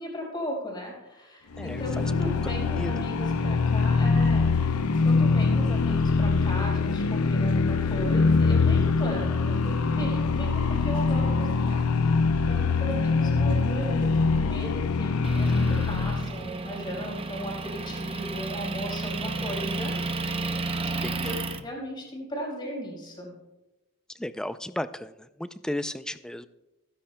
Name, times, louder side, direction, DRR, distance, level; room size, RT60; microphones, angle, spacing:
voice 1, 0.0-4.7 5.0-20.2 21.2-23.3, equal, 20° left, -2 dB, 4.5 m, -37 dB
sound 1, 1.5-16.3, left 4 dB, 90° left, 0.6 m, -23 dB
voice 2, 1.6-2.1 2.7-3.1 21.0-21.3 24.2-25.1 25.4-26.5, left 1 dB, 5° left, 12 dB, 0.3 m, -34 dB
Motor vehicle (road) / Engine, 15.2-21.6, right 2 dB, 25° right, 0.7 m, -32 dB
28.0 x 10.0 x 2.2 m, 1.0 s
head